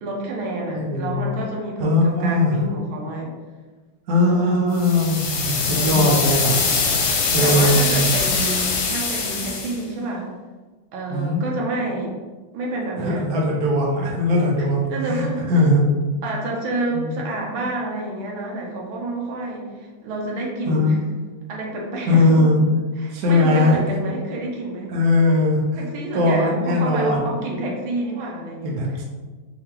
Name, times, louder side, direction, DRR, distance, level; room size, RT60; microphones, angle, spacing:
voice 1, 0.0-3.4 4.3-4.6 5.8-6.3 7.4-10.3 10.9-12.1 12.5-13.3 14.6-15.5 16.2-21.0 21.5-22.4 23.0-24.9 25.8-29.1, right 2 dB, 80° right, -2 dB, 1.6 m, -29 dB
voice 2, 0.7-1.3 1.8-2.6 4.1-6.6 7.3-8.1 11.1-11.4 12.9-15.8 17.0-17.2 20.7-20.9 22.1-22.6 23.1-23.8 24.9-25.8 26.1-27.3 28.6-29.0, left 1 dB, 60° right, -2 dB, 1.2 m, -19 dB
sound 1, 4.7-9.8, left 4 dB, 75° left, 1.5 m, -22 dB
4.7 x 2.8 x 3.7 m, 1.3 s
omnidirectional pair, 2.2 m